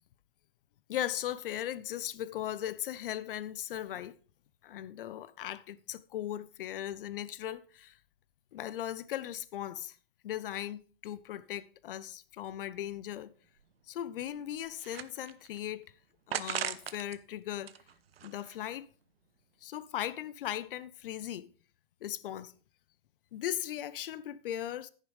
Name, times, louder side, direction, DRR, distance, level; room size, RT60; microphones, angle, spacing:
voice 1, 0.9-4.1 4.6-7.9 8.5-9.9 10.2-13.3 13.9-15.8 16.3-17.7 18.2-18.9 19.6-21.4 22.0-22.5 23.3-24.9, left 12 dB, 65° left, 0.8 m, -38 dB
Can crusher, 13.2-13.3 13.6-13.7 14.3-15.6 16.3-17.2 17.5-18.8, right 9 dB, 85° right, 0.8 m, -39 dB
11.0 x 10.0 x 3.4 m
hypercardioid pair, 130°, 29 cm